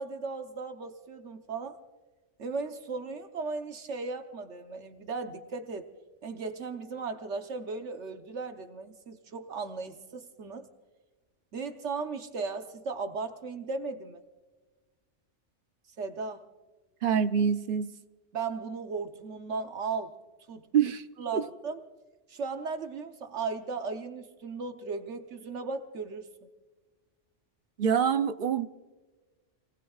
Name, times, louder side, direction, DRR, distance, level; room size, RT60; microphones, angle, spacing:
voice 1, 0.0-1.8 2.4-5.9 6.2-10.7 11.5-14.2 16.0-16.4 18.3-20.1 20.5-20.7 21.2-21.8 22.3-26.3, right 4 dB, 75° right, 1.3 m, -36 dB
voice 2, 17.0-17.9 20.7-21.0 21.3-21.4 27.8-28.7, right 7 dB, 55° right, 0.8 m, -25 dB
29.5 x 18.5 x 2.4 m
omnidirectional pair, 1.2 m